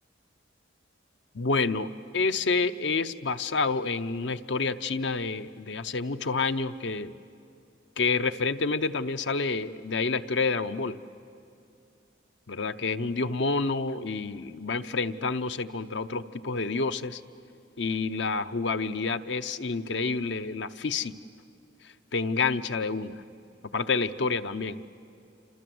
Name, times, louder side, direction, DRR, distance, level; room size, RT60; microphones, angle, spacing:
voice 1, 1.3-1.9 2.1-7.1 8.0-11.0 12.5-17.2 17.8-21.1 22.1-23.2 23.7-24.8, left 4 dB, 70° left, 11 dB, 0.8 m, -28 dB
28.0 x 26.5 x 7.8 m, 2.6 s
head